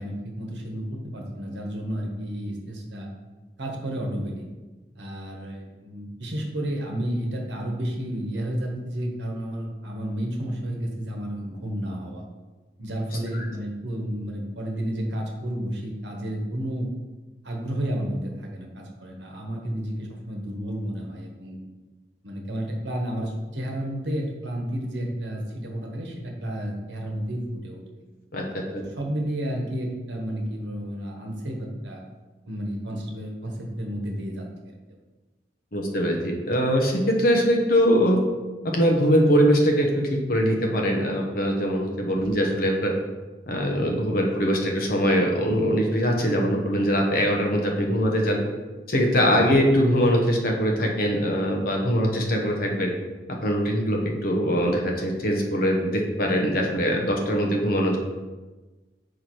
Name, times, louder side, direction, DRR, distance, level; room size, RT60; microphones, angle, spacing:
voice 1, 0.0-3.1 3.6-4.5 4.9-12.2 12.8-16.9 17.4-21.6 22.2-27.8 28.7-32.0 32.5-35.0 42.2-42.4 49.3-49.5, equal, 75° right, 1 dB, 1.1 m, -31 dB
voice 2, 35.7-38.2 38.7-39.9 40.3-42.9 43.5-48.4 48.9-52.9 53.4-58.0, equal, 50° left, 1 dB, 1.0 m, -22 dB
4.8 x 4.4 x 4.7 m, 1.2 s
head